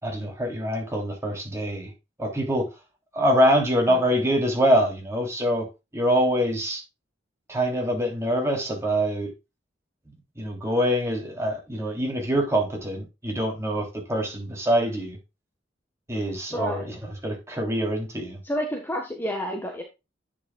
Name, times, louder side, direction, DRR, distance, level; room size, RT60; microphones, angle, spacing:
voice 1, 0.0-1.9 2.2-2.7 3.1-5.7 5.9-6.8 7.5-9.3 10.4-15.2 16.1-16.9 17.2-18.4, equal, 15° right, 3.2 m, -24 dB
voice 2, 16.5-16.9 18.4-19.8, equal, 10° left, 1.3 m, -30 dB
9.8 x 7.1 x 2.3 m
head